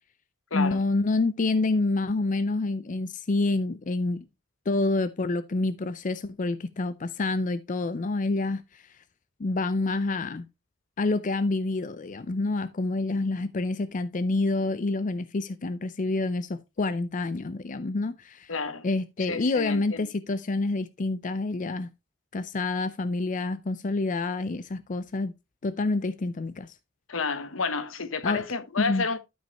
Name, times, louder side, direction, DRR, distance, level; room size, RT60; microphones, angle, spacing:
voice 1, 0.5-4.3 4.7-8.8 9.4-10.5 11.0-18.5 18.8-21.9 22.3-25.3 25.6-26.7 28.2-28.4 28.8-29.0, left 2 dB, 40° left, 0.5 m, -28 dB
voice 2, 18.5-18.9 19.3-20.1 27.1-29.2, left 4 dB, 80° left, 1.0 m, -30 dB
12.5 x 5.2 x 3.0 m
head